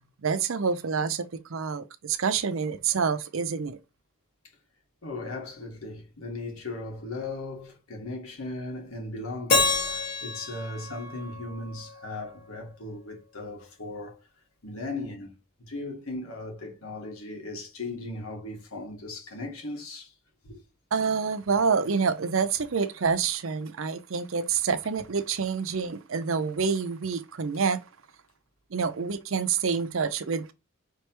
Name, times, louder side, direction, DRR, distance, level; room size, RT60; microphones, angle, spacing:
voice 1, 0.2-3.8 20.9-27.8 28.7-30.5, right 5 dB, 65° right, 0.6 m, -27 dB
voice 2, 5.0-14.2 14.6-20.1 20.4-20.6, left 2 dB, 80° left, 1.8 m, -37 dB
Keyboard (musical), 9.5-12.5, left 3 dB, 45° left, 1.3 m, -29 dB
5.3 x 3.3 x 2.9 m
head